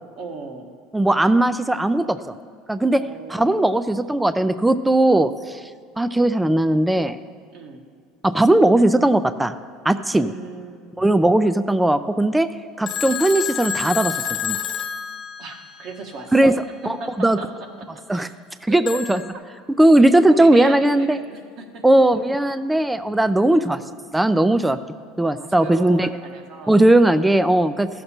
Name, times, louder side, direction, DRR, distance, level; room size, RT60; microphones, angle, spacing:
voice 1, 0.2-0.7 2.9-3.8 7.5-7.8 10.1-11.1 15.4-16.5 16.8-18.3 18.7-19.0 19.3-19.4 20.3-21.8 23.4-23.7 25.3-26.8, right 4 dB, 55° right, 4 dB, 1.4 m, -37 dB
voice 2, 0.9-2.2 2.7-3.0 3.3-5.6 6.0-7.2 8.2-9.6 9.9-10.3 11.0-12.5 12.8-14.1 14.4-14.6 16.3-16.5 17.2-17.4 18.1-18.3 18.6-19.2 19.8-21.2 21.8-23.8 24.1-24.8 25.2-26.1 26.7-27.9, right 1 dB, 5° right, 12 dB, 0.4 m, -17 dB
Telephone, 12.9-15.9 18.9-19.3, left 9 dB, 40° left, 1.0 m, -28 dB
15.0 x 6.6 x 4.3 m, 2.1 s
supercardioid pair, 115°, 0 cm